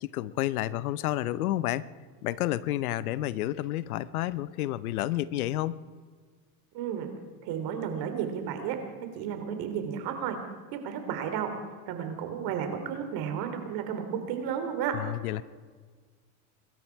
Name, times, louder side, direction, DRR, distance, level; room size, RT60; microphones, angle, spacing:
voice 1, 0.0-1.9 2.2-5.8 14.9-15.4, left 14 dB, 85° left, 19 dB, 0.8 m, -30 dB
voice 2, 6.7-7.1 7.4-8.8 9.1-10.4 10.7-11.5 11.9-15.0, right 8 dB, 55° right, 6 dB, 3.2 m, -32 dB
24.0 x 12.5 x 4.6 m, 1.5 s
supercardioid pair, 110°, 42 cm